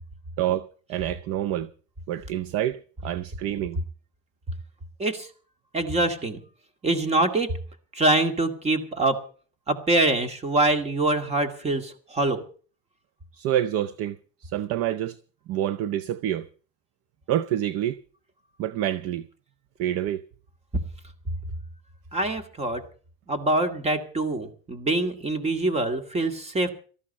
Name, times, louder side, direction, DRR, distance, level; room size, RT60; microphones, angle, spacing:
voice 1, 0.4-1.7 2.1-3.8 13.3-15.2 15.5-16.5 17.3-18.0 18.6-19.3 19.8-20.2, right 12 dB, 40° right, 0.6 m, -27 dB
voice 2, 5.7-6.4 6.8-7.5 7.9-9.2 9.7-12.4 22.1-22.8 23.3-26.7, right 2 dB, 15° right, 2.2 m, -24 dB
19.0 x 14.0 x 4.3 m
cardioid pair, 155°, 37 cm